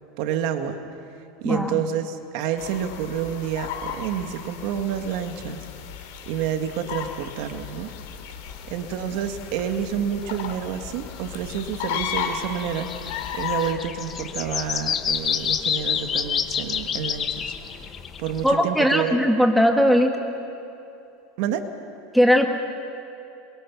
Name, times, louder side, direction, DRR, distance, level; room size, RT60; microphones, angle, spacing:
voice 1, 0.2-0.8 1.4-5.6 6.3-7.9 8.7-12.9 13.3-17.5 18.2-19.2 21.4-21.7, right 9 dB, 60° right, 7 dB, 1.6 m, -29 dB
voice 2, 1.4-1.8 18.4-20.1 22.1-22.5, equal, ahead, 3 dB, 1.7 m, -18 dB
sound 1, 2.6-13.7, left 8 dB, 75° left, 2.8 m, -34 dB
sound 2, 8.5-18.5, left 7 dB, 30° left, 1.1 m, -30 dB
28.0 x 22.5 x 6.0 m, 2.7 s
supercardioid pair, 145°, 0 cm